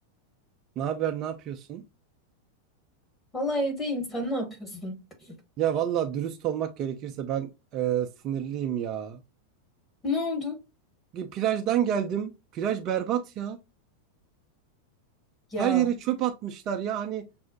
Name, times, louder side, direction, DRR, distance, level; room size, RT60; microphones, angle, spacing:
voice 1, 0.8-1.8 5.6-9.2 11.1-13.6 15.6-17.3, right 10 dB, 35° right, 0.4 m, -28 dB
voice 2, 3.3-5.4 10.0-10.6 15.5-15.9, left 1 dB, 15° left, 1.3 m, -30 dB
5.9 x 2.0 x 2.8 m
figure-of-eight pair, 90°, 0 cm